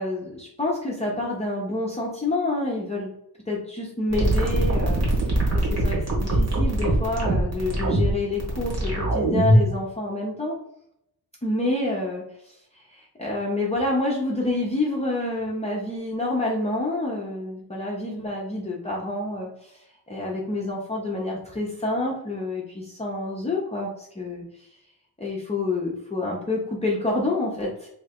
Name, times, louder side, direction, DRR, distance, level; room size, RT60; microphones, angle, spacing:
voice 1, 0.0-3.1 3.5-10.6 11.4-24.7 25.2-27.9, left 2 dB, 15° left, -4 dB, 0.6 m, -28 dB
sound 1, 4.1-9.7, right 1 dB, 40° right, 1.3 m, -22 dB
3.1 x 2.8 x 3.6 m, 0.75 s
cardioid pair, 110°, 40 cm